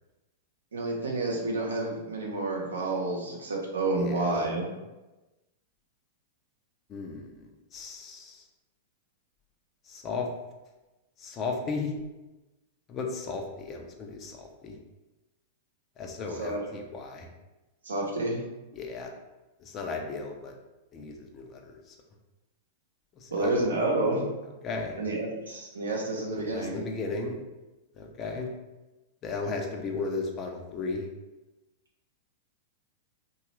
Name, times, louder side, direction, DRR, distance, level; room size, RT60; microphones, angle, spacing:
voice 1, 0.7-4.7 16.2-16.6 17.8-18.4 23.3-24.2 25.0-26.8, right 2 dB, 85° right, -2 dB, 0.7 m, -29 dB
voice 2, 4.0-4.4 6.9-8.4 9.9-10.3 11.2-11.9 12.9-14.8 16.0-17.3 18.7-19.1 19.6-20.5 20.9-21.9 23.2-23.5 24.6-25.0 26.3-27.4 28.0-28.5 29.2-31.1, left 4 dB, 30° left, 2 dB, 0.5 m, -35 dB
2.8 x 2.3 x 3.1 m, 1.1 s
hypercardioid pair, 105°, 0 cm